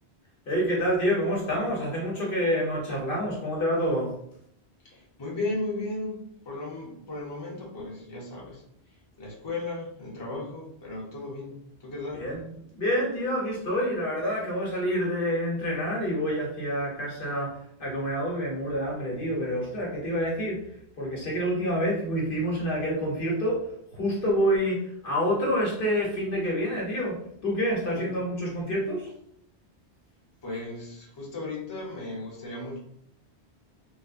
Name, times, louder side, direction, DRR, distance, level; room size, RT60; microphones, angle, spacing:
voice 1, 0.5-4.1 12.1-12.5 12.7-20.7 21.0-23.6 23.9-29.1, equal, 55° left, -3 dB, 0.9 m, -27 dB
voice 2, 4.8-8.6 9.2-11.5 11.8-12.2 27.9-28.5 30.4-32.8, left 2 dB, 25° left, -4 dB, 0.7 m, -35 dB
3.2 x 2.0 x 2.4 m, 0.70 s
omnidirectional pair, 1.1 m